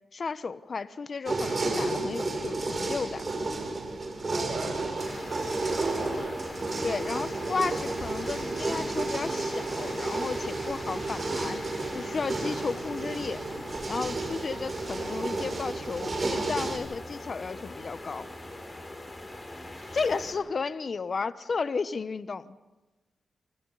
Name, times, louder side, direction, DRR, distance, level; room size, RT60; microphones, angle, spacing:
voice 1, 0.1-3.2 6.8-11.6 11.9-13.4 13.9-18.3 19.9-22.5, left 4 dB, 50° left, 13 dB, 1.0 m, -33 dB
sound 1, 1.3-16.8, right 2 dB, 40° right, 6.6 m, -32 dB
voice 2, 4.3-6.4 19.8-20.4, right 3 dB, 75° right, -2 dB, 7.6 m, -40 dB
sound 2, 5.0-20.3, left 1 dB, 25° left, 6.2 m, -42 dB
29.0 x 25.0 x 4.1 m, 1.1 s
cardioid pair, 70°, 0 cm